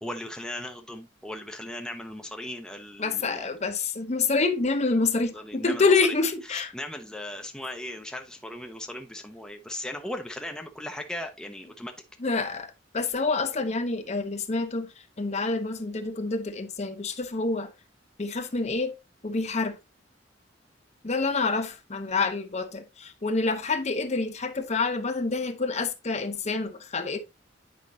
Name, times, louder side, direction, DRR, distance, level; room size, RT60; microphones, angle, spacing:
voice 1, 0.0-3.5 5.3-6.2 6.5-11.9, left 1 dB, 5° left, 0.6 m, -37 dB
voice 2, 3.0-6.7 12.2-14.9 15.2-17.7 18.2-18.9 19.2-19.8 21.0-27.2, left 3 dB, 35° left, 0.7 m, -27 dB
8.5 x 5.1 x 2.6 m
head